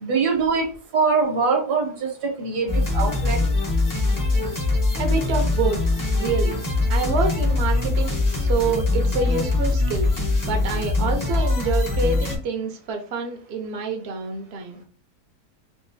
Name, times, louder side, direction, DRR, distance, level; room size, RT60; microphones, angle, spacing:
voice 1, 0.0-3.4, right 4 dB, 75° right, 2 dB, 1.4 m, -23 dB
sound 1, 2.7-12.4, left 2 dB, 25° left, 0.4 m, -22 dB
voice 2, 4.9-5.8 6.2-6.6 6.9-10.1 10.5-14.8, right 4 dB, 55° right, 4 dB, 0.7 m, -27 dB
3.8 x 2.4 x 2.6 m, 0.39 s
omnidirectional pair, 1.7 m